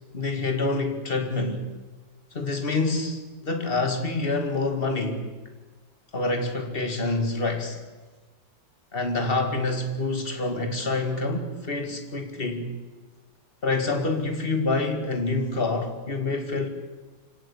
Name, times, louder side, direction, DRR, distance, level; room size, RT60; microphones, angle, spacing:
voice 1, 0.1-1.6 2.3-5.2 6.1-7.8 8.9-12.7 13.6-16.7, left 3 dB, 25° left, 2.5 m, -27 dB
25.0 x 17.5 x 8.6 m
omnidirectional pair, 2.2 m